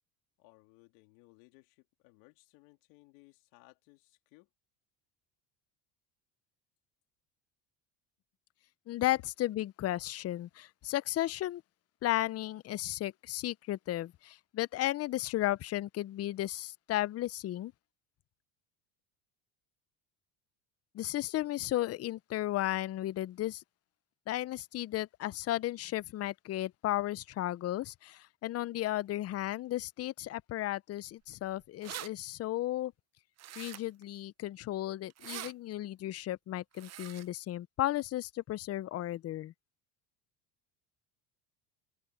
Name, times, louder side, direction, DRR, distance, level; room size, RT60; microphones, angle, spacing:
voice 1, 0.4-4.5, left 23 dB, 90° left, 3.0 m, -62 dB
voice 2, 8.9-11.6 12.0-17.7 20.9-23.6 24.3-32.9 33.6-39.5, left 14 dB, 35° left, 0.4 m, -34 dB
sound 1, 31.3-31.4 31.6-32.1 33.4-34.0 35.1-35.5 36.7-37.3, right 12 dB, 35° right, 0.6 m, -43 dB
open air
cardioid pair, 110°, 46 cm